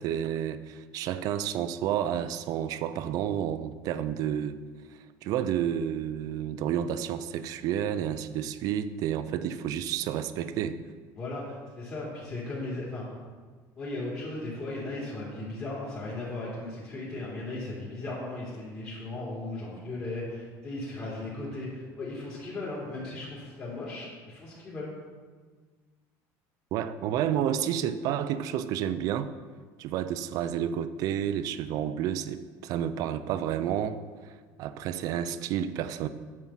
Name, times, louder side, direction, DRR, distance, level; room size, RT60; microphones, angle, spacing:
voice 1, 0.0-4.6 5.2-10.8 26.7-29.3 29.8-36.1, right 10 dB, 55° right, 12 dB, 0.5 m, -30 dB
voice 2, 11.1-13.0 13.8-24.9, left 2 dB, 35° left, -8 dB, 2.9 m, -37 dB
9.1 x 7.5 x 5.6 m, 1.5 s
cardioid pair, 155°, 8 cm